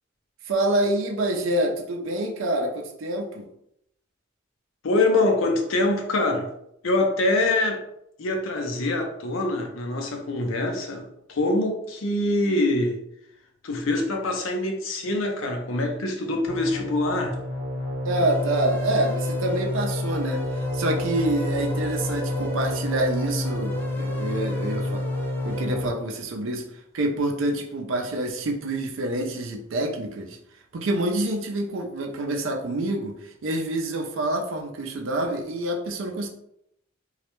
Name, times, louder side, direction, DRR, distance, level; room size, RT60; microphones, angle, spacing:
voice 1, 0.5-3.5 18.0-25.1 25.4-26.7 26.9-30.4 30.7-36.3, right 1 dB, 80° right, 2 dB, 0.5 m, -27 dB
voice 2, 4.8-6.5 6.8-7.8 8.2-13.0 13.6-17.4, left 2 dB, 85° left, 3 dB, 0.5 m, -24 dB
sound 1, 16.5-25.9, left 1 dB, 25° right, 0.9 m, -29 dB
sound 2, 18.1-25.7, left 1 dB, 10° left, 0.4 m, -39 dB
2.3 x 2.0 x 2.9 m, 0.76 s
head